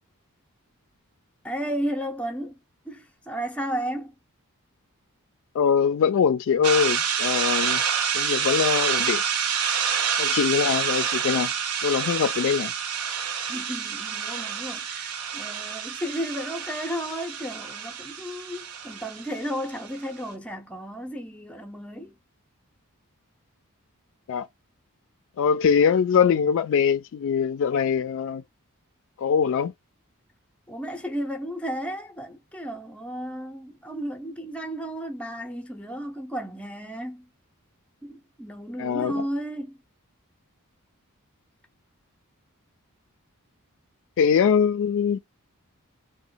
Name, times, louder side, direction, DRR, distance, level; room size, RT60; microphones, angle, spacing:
voice 1, 1.4-2.6 2.9-4.1 13.5-22.2 30.7-37.3 38.0-39.8, equal, 5° left, 0.6 m, -33 dB
voice 2, 5.5-7.8 8.1-9.2 10.2-11.5 11.8-12.7 24.3-24.5 25.4-28.4 29.2-29.7 38.8-39.2 44.2-45.2, left 7 dB, 60° left, 0.3 m, -22 dB
sound 1, 6.6-20.0, right 7 dB, 85° right, 0.7 m, -28 dB
3.0 x 2.1 x 3.8 m
head